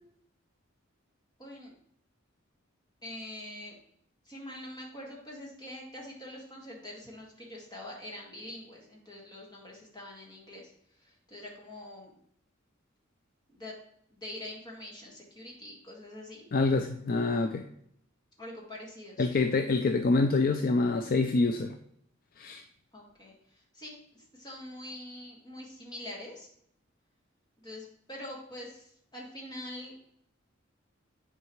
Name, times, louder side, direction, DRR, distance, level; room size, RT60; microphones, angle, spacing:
voice 1, 1.4-1.7 3.0-3.8 4.2-12.2 13.5-13.7 14.1-16.5 18.4-19.4 22.9-26.5 27.6-29.9, left 1 dB, 20° left, -2 dB, 1.8 m, -44 dB
voice 2, 16.5-17.6 19.2-21.7 22.4-22.6, left 3 dB, 45° left, 6 dB, 0.4 m, -26 dB
9.4 x 4.7 x 3.1 m, 0.70 s
head